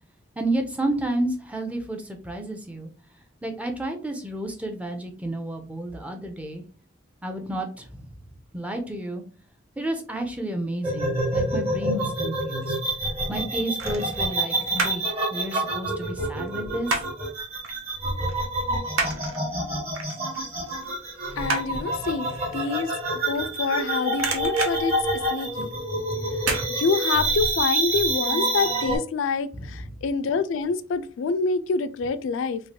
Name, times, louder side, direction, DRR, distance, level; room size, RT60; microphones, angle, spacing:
voice 1, 0.4-2.9 3.4-6.6 7.2-8.1 8.5-9.2 9.8-12.7 13.3-15.0 15.3-17.0 21.2-21.5 29.5-30.0, right 1 dB, 5° right, 0.4 m, -31 dB
sound 1, 10.8-29.0, right 2 dB, 30° right, 1.0 m, -27 dB
sound 2, 12.3-12.9 13.8-15.1 15.4-17.3 17.6-17.8 18.2-23.8 24.1-25.8 26.4-26.7 27.1-27.2, right 3 dB, 90° right, 0.6 m, -31 dB
voice 2, 21.4-22.3 22.5-24.9 25.3-25.7 26.7-32.6, left 4 dB, 70° left, 0.3 m, -26 dB
3.1 x 2.4 x 2.7 m
head